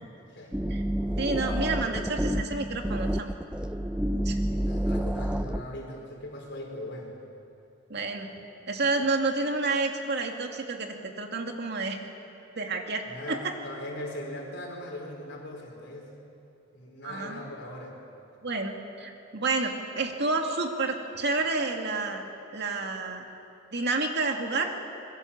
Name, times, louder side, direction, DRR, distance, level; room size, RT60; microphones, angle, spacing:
voice 1, 0.2-0.5 4.3-7.1 13.0-16.1 16.7-17.9, left 1 dB, 65° left, 0 dB, 5.0 m, -40 dB
sound 1, 0.5-5.6, equal, 5° right, 0.6 m, -29 dB
voice 2, 1.2-3.3 4.2-4.4 7.9-8.3 8.7-12.0 12.6-13.5 17.0-17.4 18.4-22.3 22.5-23.2 23.7-24.7, right 3 dB, 60° right, 3 dB, 2.3 m, -29 dB
26.0 x 21.5 x 7.4 m, 3.0 s
head